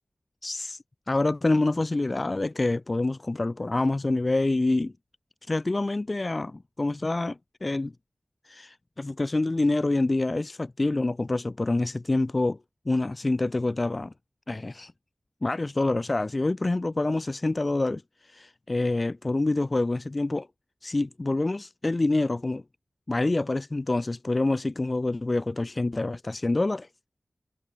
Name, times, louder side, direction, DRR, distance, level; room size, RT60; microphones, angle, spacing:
voice 1, 0.4-0.8 1.1-4.9 5.5-7.9 8.4-12.6 12.9-14.1 14.5-14.9 15.4-20.5 20.8-22.6 23.1-26.9, left 2 dB, 40° left, 1.1 m, -26 dB
wide cardioid pair, 65°, 0 cm